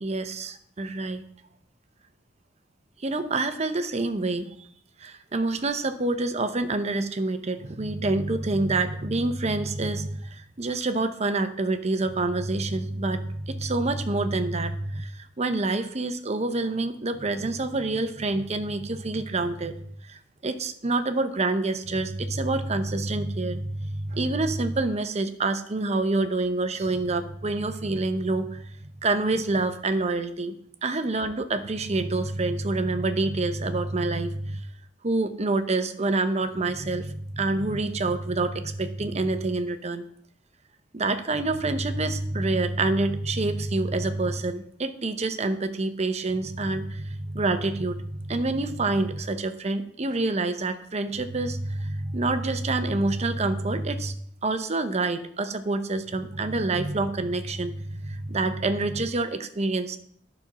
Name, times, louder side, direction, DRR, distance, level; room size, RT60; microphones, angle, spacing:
voice 1, 0.0-1.2 3.0-4.5 5.0-28.6 29.0-30.5 30.8-34.6 35.0-40.0 40.9-54.1 54.4-60.0, right 2 dB, 35° right, 9 dB, 0.8 m, -27 dB
11.5 x 4.4 x 6.1 m, 0.66 s
head